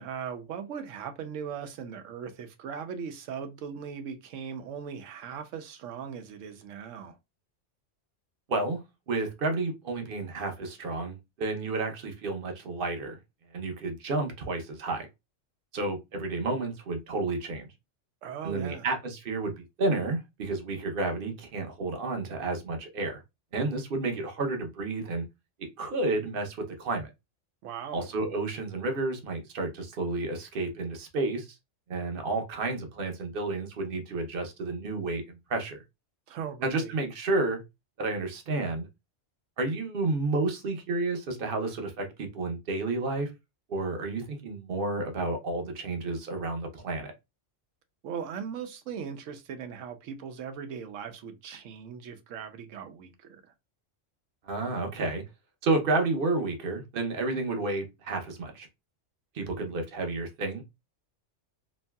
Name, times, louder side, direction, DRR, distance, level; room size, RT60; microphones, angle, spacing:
voice 1, 0.0-7.2 18.2-18.9 27.6-28.1 36.3-36.9 48.0-53.4, right 7 dB, 85° right, 1.0 m, -39 dB
voice 2, 8.5-8.8 9.1-13.2 13.5-15.1 15.7-17.7 18.4-23.2 23.5-25.2 25.6-27.1 27.9-31.6 31.9-35.8 36.6-37.6 38.0-38.9 39.6-43.3 43.7-47.1 54.5-55.2 55.6-58.7 59.3-60.6, right 2 dB, 55° right, 0.8 m, -31 dB
3.0 x 2.6 x 2.2 m
omnidirectional pair, 1.3 m